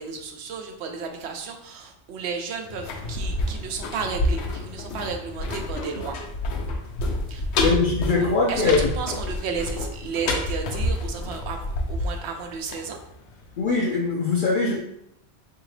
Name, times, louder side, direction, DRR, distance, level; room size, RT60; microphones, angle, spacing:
voice 1, 0.0-6.2 7.3-7.5 8.5-13.0, right 5 dB, 85° right, 5 dB, 0.9 m, -33 dB
sound 1, 2.7-13.5 13.8-13.9, left 2 dB, 85° left, 0.9 m, -28 dB
voice 2, 7.6-8.9 13.6-14.8, left 4 dB, 60° left, -2 dB, 0.6 m, -22 dB
3.7 x 2.8 x 3.1 m, 0.78 s
omnidirectional pair, 1.1 m